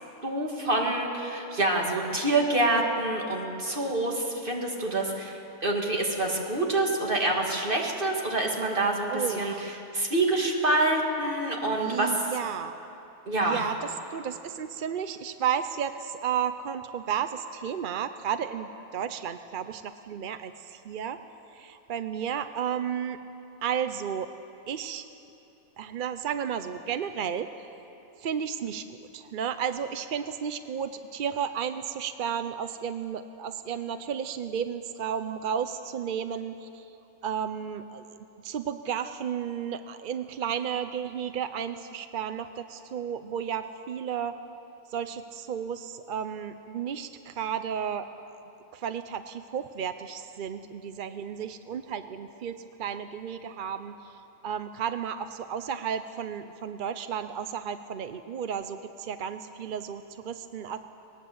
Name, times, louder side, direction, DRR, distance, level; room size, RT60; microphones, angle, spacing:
voice 1, 0.2-12.3 13.3-13.7, right 2 dB, 40° right, 0 dB, 2.5 m, -27 dB
voice 2, 9.1-9.7 11.8-12.8 13.4-21.2 21.5-23.2 23.6-24.3 24.7-25.0 25.8-27.5 28.2-37.0 37.2-38.2 38.4-44.4 44.9-48.1 48.7-60.8, right 8 dB, 55° right, 10 dB, 0.6 m, -33 dB
20.0 x 19.0 x 8.0 m, 3.0 s
omnidirectional pair, 1.5 m